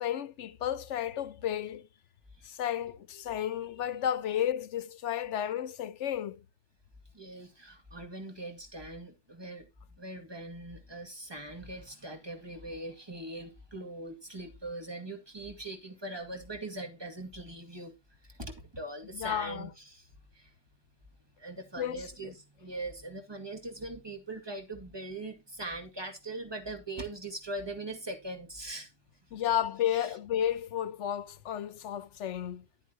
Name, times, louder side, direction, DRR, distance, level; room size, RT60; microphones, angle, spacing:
voice 1, 0.0-1.9 2.4-6.4 19.1-19.7 21.8-22.3 29.3-32.6, left 10 dB, 75° left, 1.1 m, -32 dB
voice 2, 7.1-17.9 18.2-20.5 21.4-29.4 29.9-30.2, right 2 dB, 20° right, 2.1 m, -41 dB
11.5 x 8.1 x 2.9 m
omnidirectional pair, 1.2 m